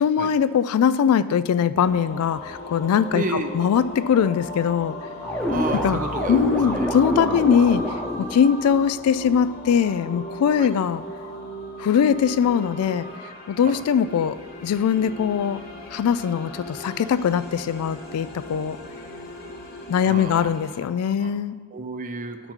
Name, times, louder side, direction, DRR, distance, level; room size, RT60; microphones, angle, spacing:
voice 1, 0.0-5.0 5.8-6.0 6.3-7.8 8.2-11.0 11.8-13.1 13.5-14.4 14.6-15.6 15.9-18.8 19.9-21.6, left 7 dB, 80° left, 14 dB, 0.3 m, -21 dB
sound 1, 1.8-20.8, equal, 45° left, 1.3 m, -37 dB
voice 2, 3.1-3.5 5.5-6.9 7.2-7.5 10.6-10.7 13.6-13.8 20.0-20.5 21.1-21.3 21.7-22.4, right 3 dB, 35° right, 7 dB, 0.5 m, -31 dB
sound 2, 5.2-8.3, left 1 dB, 5° left, 0.8 m, -26 dB
11.5 x 4.1 x 4.3 m, 1.5 s
head